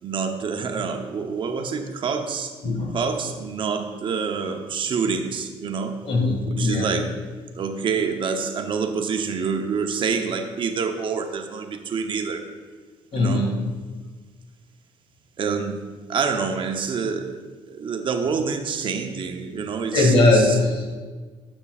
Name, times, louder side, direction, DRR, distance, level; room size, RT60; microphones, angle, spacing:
voice 1, 0.0-2.5 2.9-6.0 6.6-7.1 7.5-12.4 13.1-13.5 15.4-15.8 16.1-17.4 17.7-20.6, right 5 dB, 45° right, 5 dB, 0.9 m, -27 dB
voice 2, 2.6-3.0 6.0-6.9 13.1-13.6 19.9-21.0, left 2 dB, 55° left, 0 dB, 2.2 m, -20 dB
12.0 x 7.2 x 2.5 m, 1.4 s
cardioid pair, 95°, 12 cm